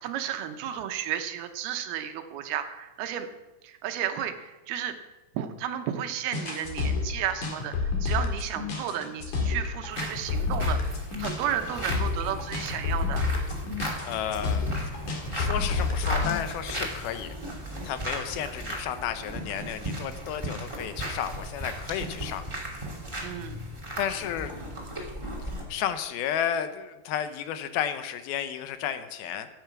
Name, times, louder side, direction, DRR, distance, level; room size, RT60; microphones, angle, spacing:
voice 1, 0.0-3.3 3.6-5.0 5.3-10.8 11.2-13.2 23.2-23.6, right 10 dB, 80° right, 7 dB, 2.8 m, -33 dB
sound 1, 6.3-16.4, left 4 dB, 55° left, 3.3 m, -29 dB
sound 2, 9.9-25.6, right 1 dB, 10° right, 1.9 m, -36 dB
voice 2, 13.8-14.9 15.3-17.3 17.8-22.4 24.0-24.5 25.0-25.1 25.4-29.5, left 9 dB, 80° left, 10 dB, 2.5 m, -32 dB
14.0 x 9.1 x 5.9 m, 1.1 s
omnidirectional pair, 4.5 m